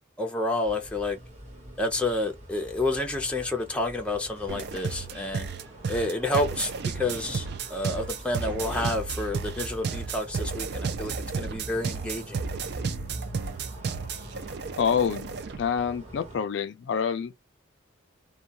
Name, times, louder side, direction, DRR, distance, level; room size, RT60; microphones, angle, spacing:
voice 1, 0.2-1.2 1.8-5.5 5.9-12.4, left 2 dB, 5° left, 0.5 m, -29 dB
sound 1, 0.6-16.4, right 1 dB, 35° right, 1.1 m, -45 dB
sound 2, 4.5-15.6, right 5 dB, 55° right, 0.4 m, -33 dB
voice 2, 14.8-17.5, left 7 dB, 65° left, 0.3 m, -27 dB
2.3 x 2.2 x 2.7 m
head